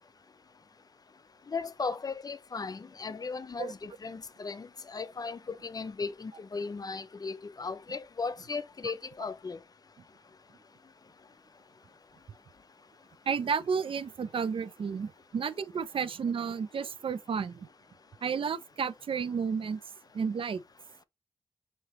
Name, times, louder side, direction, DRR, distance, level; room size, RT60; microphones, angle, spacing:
voice 1, 1.5-9.6, left 4 dB, 35° left, 0.4 m, -37 dB
voice 2, 13.3-17.7 18.2-19.8 20.1-20.6, right 6 dB, 55° right, 0.3 m, -32 dB
4.9 x 2.7 x 2.9 m
cardioid pair, 75°, 11 cm